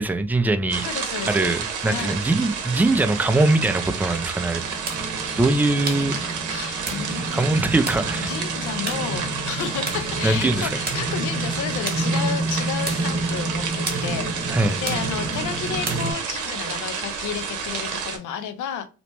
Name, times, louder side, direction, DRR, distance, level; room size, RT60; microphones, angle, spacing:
voice 1, 0.0-0.8 1.3-4.6 5.4-6.1 7.3-8.3 10.2-10.7 14.5-14.8, right 2 dB, 5° right, 0.3 m, -21 dB
sound 1, 0.7-18.2, right 6 dB, 75° right, 0.7 m, -30 dB
voice 2, 0.8-1.5 1.9-2.2 6.5-7.4 8.3-18.9, left 8 dB, 75° left, 0.6 m, -32 dB
sound 2, 4.5-16.1, right 2 dB, 30° right, 1.1 m, -29 dB
2.9 x 2.1 x 2.9 m
cardioid pair, 90°, 30 cm